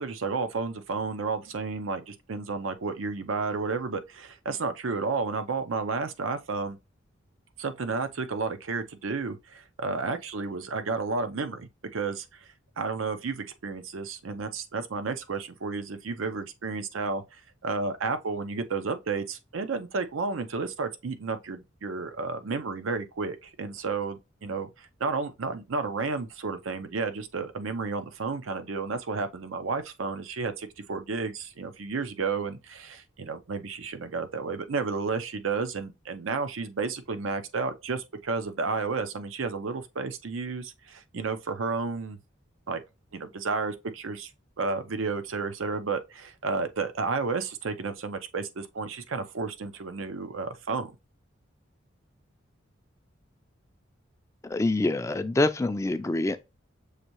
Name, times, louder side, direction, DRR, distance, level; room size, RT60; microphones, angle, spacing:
voice 1, 0.0-6.8 7.6-12.5 12.8-42.2 42.7-42.8 43.1-44.3 44.6-50.9, right 4 dB, 85° right, 0.6 m, -32 dB
voice 2, 54.4-56.4, left 2 dB, 15° left, 0.3 m, -26 dB
6.5 x 2.6 x 3.0 m
head